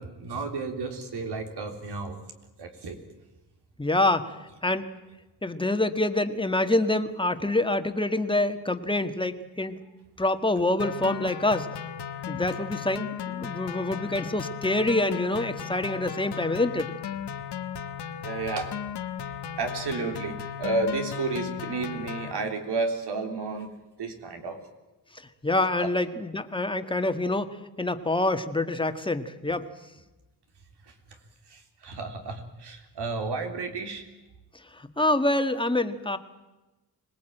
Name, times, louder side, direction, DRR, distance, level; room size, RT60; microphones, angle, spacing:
voice 1, 0.0-2.2 2.6-3.0 18.2-18.7 19.6-23.7 24.0-24.6 25.8-25.9 30.8-30.9 31.5-34.1, right 3 dB, 85° right, 5 dB, 3.7 m, -32 dB
voice 2, 3.8-4.3 4.6-4.9 5.4-9.8 10.2-11.7 12.3-16.9 25.4-29.7 34.8-36.2, left 2 dB, 10° left, 8 dB, 1.6 m, -26 dB
sound 1, 10.8-22.3, left 8 dB, 85° left, 1.4 m, -36 dB
25.5 x 19.5 x 9.1 m, 1.1 s
wide cardioid pair, 110°, 39 cm